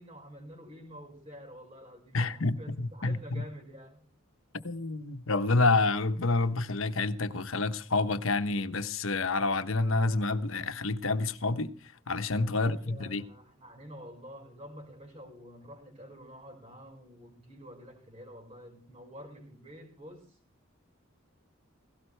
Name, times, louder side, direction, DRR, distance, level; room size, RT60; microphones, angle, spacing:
voice 1, 0.0-4.0 12.5-20.4, equal, 30° right, 5.3 m, -48 dB
voice 2, 2.1-3.4 4.6-11.7 12.1-13.2, left 3 dB, 70° left, 1.1 m, -28 dB
17.5 x 17.0 x 3.3 m
head